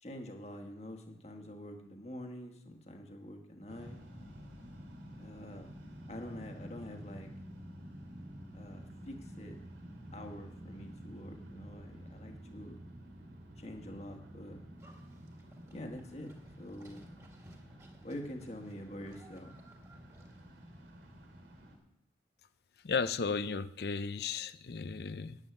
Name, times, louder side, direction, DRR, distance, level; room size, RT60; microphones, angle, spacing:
voice 1, 0.0-4.0 5.2-5.7 6.1-7.3 8.5-9.6 10.1-12.8 13.6-14.6 15.7-16.3 16.6-17.1 18.0-19.5, left 1 dB, 35° left, 4 dB, 1.4 m, -46 dB
sound 1, 3.7-21.8, equal, 75° right, 2.7 m, -50 dB
Livestock farm animals working animals, 14.8-20.6, right 1 dB, 15° right, 1.9 m, -60 dB
voice 2, 22.8-25.4, left 5 dB, 60° left, 14 dB, 0.5 m, -34 dB
10.0 x 7.3 x 9.3 m, 0.78 s
head